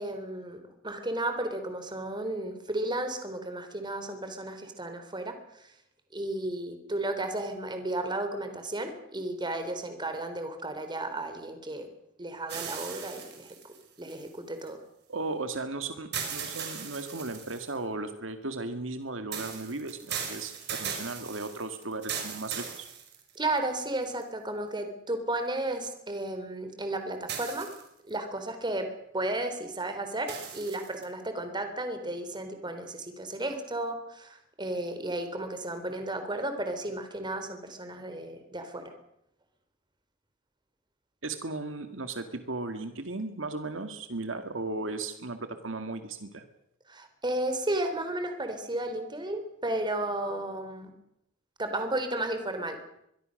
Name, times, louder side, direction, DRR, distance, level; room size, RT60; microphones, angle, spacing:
voice 1, 0.0-5.7 6.1-11.9 12.2-14.8 23.4-27.7 28.1-38.9 46.9-50.9 51.6-52.8, right 1 dB, 25° right, 7 dB, 3.7 m, -33 dB
sound 1, 12.5-14.7 16.1-17.8 19.3-23.6 24.2-24.3 27.3-28.1 30.3-31.0, right 7 dB, 55° right, 5.4 m, -38 dB
voice 2, 15.1-22.9 41.2-46.4, right 3 dB, 75° right, 8 dB, 2.0 m, -36 dB
24.0 x 22.5 x 6.5 m, 0.76 s
head